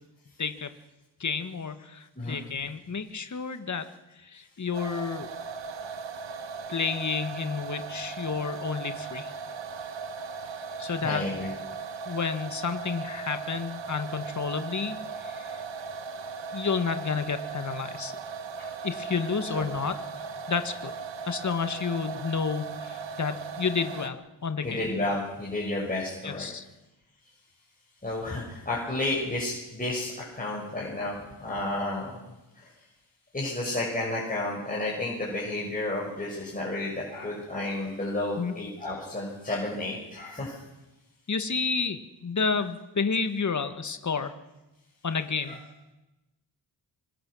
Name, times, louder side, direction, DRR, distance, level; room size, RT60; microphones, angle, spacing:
voice 1, 0.4-0.7 1.2-3.9 4.2-5.3 6.7-9.3 10.8-11.3 12.1-15.6 16.5-18.1 18.8-20.0 20.5-20.9 21.2-24.8 26.2-26.7 38.4-38.6 41.3-44.3 45.0-45.6, left 5 dB, 40° left, 9 dB, 1.7 m, -30 dB
sound 1, 4.7-24.1, right 5 dB, 75° right, 1.5 m, -38 dB
voice 2, 11.0-11.5 19.5-19.6 24.6-26.5 28.0-32.2 33.3-40.5 45.5-45.6, left 2 dB, 20° left, -5 dB, 6.0 m, -31 dB
25.5 x 23.5 x 6.4 m, 1.0 s
wide cardioid pair, 100°, 45 cm